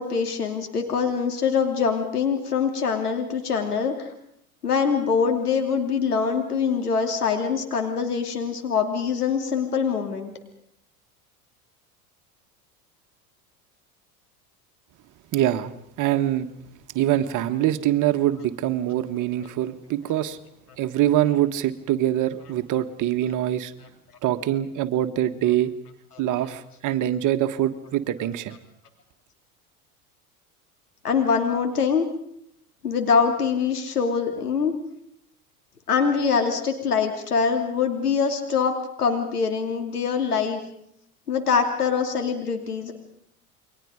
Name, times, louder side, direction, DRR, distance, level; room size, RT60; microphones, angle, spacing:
voice 1, 0.0-4.1 4.6-10.3 31.0-32.1 32.8-34.7 35.9-40.6 41.3-42.9, left 6 dB, 85° left, 4 dB, 3.0 m, -24 dB
voice 2, 15.3-16.5 16.9-20.4 20.8-23.7 24.2-25.7 26.2-28.6, right 12 dB, 40° right, 10 dB, 1.6 m, -24 dB
29.5 x 23.5 x 5.2 m, 0.74 s
figure-of-eight pair, 80°, 45 cm